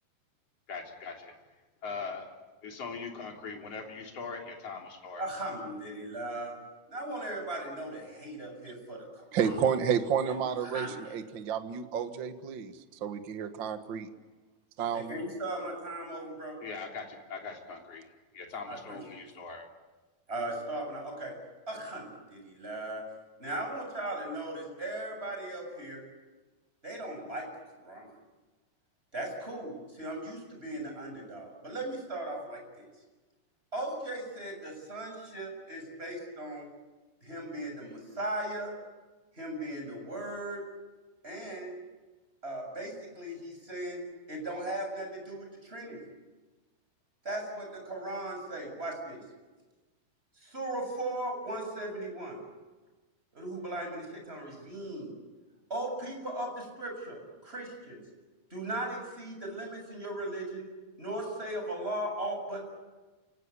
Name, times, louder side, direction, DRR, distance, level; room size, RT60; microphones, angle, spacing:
voice 1, 0.7-1.3 1.8-2.3 2.6-5.2 16.6-18.1 18.3-19.7, left 4 dB, 40° left, 1 dB, 4.2 m, -41 dB
voice 2, 5.2-6.5 6.9-9.6 10.3-11.2 14.9-16.6 18.7-19.3 20.3-21.3 21.7-23.0 23.4-26.0 26.8-27.5 27.7-28.1 29.1-32.9 33.7-36.7 37.2-38.7 39.4-40.6 41.2-41.8 42.4-44.0 44.3-46.0 47.2-49.2 50.4-52.4 53.3-55.1 55.7-58.0 58.5-60.7 61.0-62.7, right 1 dB, 15° right, 2 dB, 7.2 m, -38 dB
voice 3, 9.3-12.7 13.0-14.1 14.8-15.2, right 7 dB, 80° right, 8 dB, 1.0 m, -30 dB
29.0 x 18.0 x 9.8 m, 1.2 s
omnidirectional pair, 4.7 m